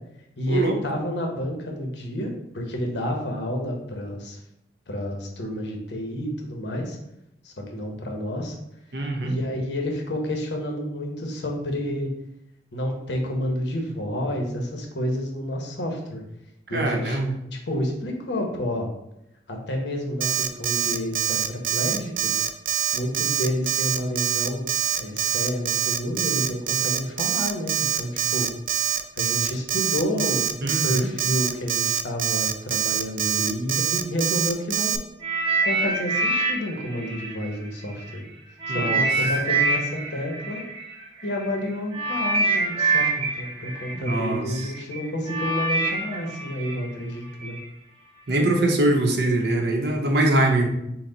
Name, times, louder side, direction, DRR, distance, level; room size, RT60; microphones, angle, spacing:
voice 1, 0.4-4.4 4.9-7.0 7.4-8.5 9.2-12.1 12.7-16.2 16.7-17.2 17.7-18.9 19.5-22.5 22.9-24.7 25.0-28.5 29.1-35.0 35.6-38.2 38.7-40.6 41.2-47.6, equal, 85° left, 2 dB, 1.0 m, -29 dB
voice 2, 8.9-9.4 16.7-17.3 30.6-31.1 38.7-39.1 43.9-44.7 48.3-50.7, right 2 dB, 65° right, 2 dB, 0.8 m, -23 dB
Alarm, 20.2-35.0, right 9 dB, 50° right, 0.3 m, -24 dB
sound 1, 35.2-38.1 38.6-47.6 48.3-48.4, right 3 dB, 30° right, 0.8 m, -26 dB
5.9 x 2.1 x 3.9 m, 0.81 s
head